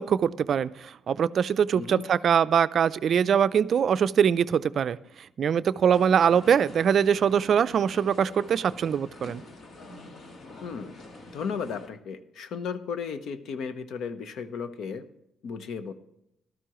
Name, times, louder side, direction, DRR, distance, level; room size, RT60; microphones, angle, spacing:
voice 1, 0.0-5.0 5.4-9.4, right 8 dB, 60° right, 15 dB, 0.4 m, -23 dB
sound 1, 5.9-11.9, left 2 dB, 55° left, 1.6 m, -46 dB
voice 2, 10.6-11.0 11.3-15.0 15.4-15.9, left 6 dB, 75° left, 11 dB, 0.8 m, -34 dB
14.0 x 12.5 x 3.0 m, 0.83 s
cardioid pair, 90°, 0 cm